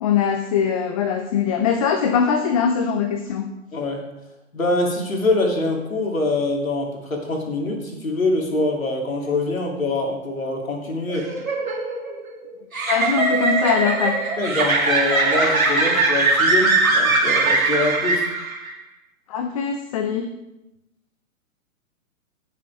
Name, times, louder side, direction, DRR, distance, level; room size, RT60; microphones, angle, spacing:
voice 1, 0.0-3.5 12.9-14.2 19.3-20.3, left 7 dB, 25° left, 7 dB, 0.6 m, -22 dB
voice 2, 4.5-11.3 14.4-18.3, left 2 dB, 75° left, 1 dB, 3.0 m, -24 dB
sound 1, 11.1-18.7, right 3 dB, 80° right, 2.6 m, -20 dB
17.0 x 7.9 x 3.5 m, 0.96 s
figure-of-eight pair, 120°, 41 cm